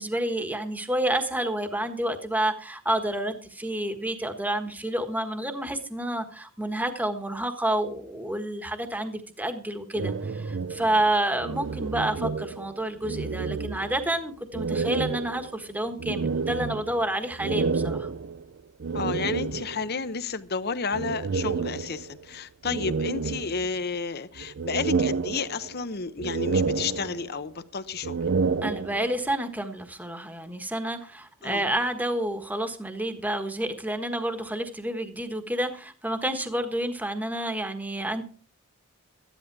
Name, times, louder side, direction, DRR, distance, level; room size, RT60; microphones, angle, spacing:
voice 1, 0.0-18.1 28.6-38.2, right 1 dB, 10° right, 1.4 m, -29 dB
sound 1, 9.9-12.8 13.0-14.1 14.5-20.0 20.9-22.2 22.6-24.0 24.4-25.9 26.2-27.5 27.9-29.3, right 4 dB, 55° right, 0.5 m, -30 dB
voice 2, 18.9-28.2 31.4-31.6, left 5 dB, 45° left, 0.9 m, -31 dB
14.5 x 11.0 x 4.7 m
head